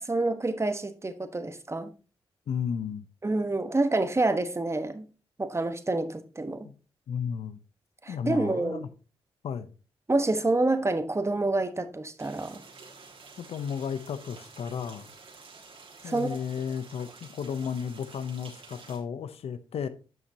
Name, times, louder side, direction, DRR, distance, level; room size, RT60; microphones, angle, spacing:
voice 1, 0.0-1.9 3.2-5.1 5.4-6.7 8.0-8.9 10.1-12.6 16.0-16.4, right 2 dB, 25° right, 1.2 m, -27 dB
voice 2, 2.5-3.1 6.6-6.7 7.1-7.6 8.1-8.9 9.4-9.7 13.4-15.1 16.0-19.9, left 7 dB, 75° left, 0.7 m, -33 dB
sound 1, 12.2-19.0, right 4 dB, 60° right, 2.3 m, -50 dB
10.5 x 6.1 x 2.8 m
supercardioid pair, 50°, 10 cm